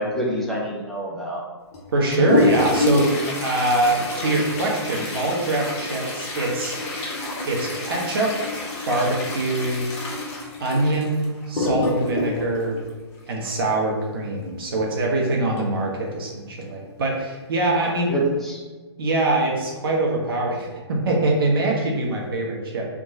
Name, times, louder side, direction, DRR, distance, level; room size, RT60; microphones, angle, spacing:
voice 1, 0.0-1.4 17.8-18.6, right 1 dB, ahead, -5 dB, 0.4 m, -26 dB
Toilet flush, 1.7-13.7 15.6-15.7 16.0-16.1 16.9-17.0 17.6-17.9 18.3-18.5, left 2 dB, 30° left, 0.7 m, -27 dB
voice 2, 1.9-3.1 3.4-6.8 7.5-8.3 8.9-9.9 10.6-12.8 13.3-18.1 19.0-22.8, right 2 dB, 55° right, -1 dB, 0.6 m, -23 dB
2.8 x 2.2 x 2.6 m, 1.3 s
figure-of-eight pair, 125°, 14 cm